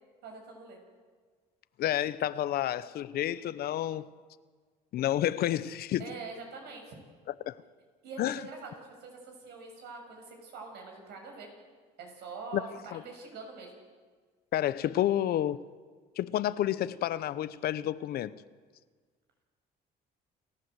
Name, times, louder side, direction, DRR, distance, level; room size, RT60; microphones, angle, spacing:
voice 1, 0.2-0.8 6.0-7.0 8.0-11.5 12.0-13.7, right 4 dB, 80° right, 6.8 m, -44 dB
voice 2, 1.8-4.1 4.9-6.1 7.5-7.6 8.2-8.4 12.5-12.6 12.9-13.0 14.5-15.6 16.2-18.4, left 12 dB, 65° left, 0.9 m, -30 dB
29.0 x 14.5 x 8.0 m
cardioid pair, 110°, 17 cm